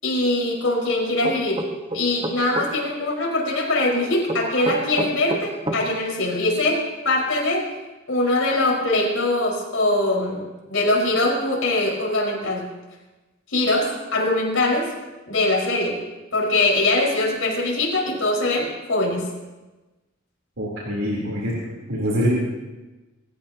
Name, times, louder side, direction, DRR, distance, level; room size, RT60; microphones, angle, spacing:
voice 1, 0.0-1.7 1.9-7.7 8.1-12.6 13.5-14.9 15.3-16.0 16.3-19.3, left 2 dB, 85° left, -3 dB, 5.3 m, -22 dB
sound 1, 1.2-2.7 4.3-5.8, right 1 dB, 25° right, 1.4 m, -28 dB
voice 2, 20.6-21.5 21.9-22.3, equal, 85° right, -5 dB, 3.8 m, -24 dB
25.5 x 14.5 x 3.0 m, 1.1 s
head